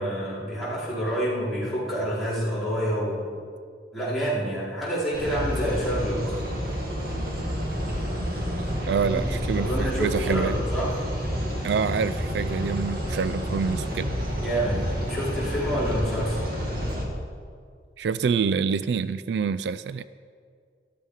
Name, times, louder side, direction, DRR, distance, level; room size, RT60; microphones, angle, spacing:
voice 1, 0.0-3.3 3.9-6.4 9.0-9.3 9.6-11.0 14.4-14.8 15.1-16.4, equal, ahead, -10 dB, 4.3 m, -28 dB
sound 1, 5.1-17.0, equal, 55° right, 2.3 m, -29 dB
voice 2, 8.8-10.6 11.6-14.2 18.0-20.0, right 6 dB, 75° right, 14 dB, 0.3 m, -26 dB
13.5 x 12.5 x 4.9 m, 2.1 s
head